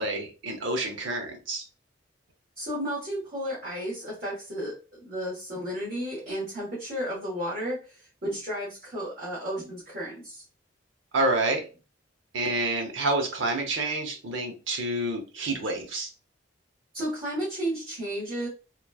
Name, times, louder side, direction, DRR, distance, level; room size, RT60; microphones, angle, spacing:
voice 1, 0.0-1.6 11.1-11.6 12.3-16.1, right 2 dB, 80° right, 2 dB, 0.8 m, -28 dB
voice 2, 2.6-4.7 5.0-10.4 16.9-18.5, equal, 45° right, -9 dB, 1.1 m, -33 dB
3.0 x 2.2 x 2.3 m, 0.33 s
head